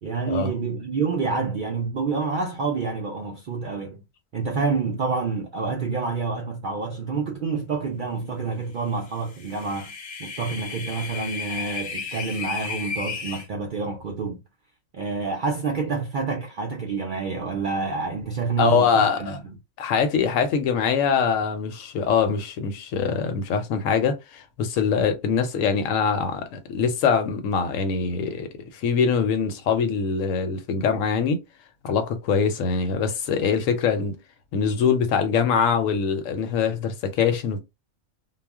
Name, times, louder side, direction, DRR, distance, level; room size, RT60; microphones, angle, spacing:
voice 1, 0.0-4.0 4.3-9.9 10.2-14.4 14.9-19.5, right 4 dB, 70° right, 0.4 m, -28 dB
sound 1, 9.2-13.5, left 5 dB, 50° left, 0.7 m, -34 dB
voice 2, 18.6-19.4 19.8-31.4 31.8-34.2 34.5-37.6, left 6 dB, 80° left, 1.0 m, -23 dB
2.3 x 2.0 x 3.4 m
omnidirectional pair, 1.4 m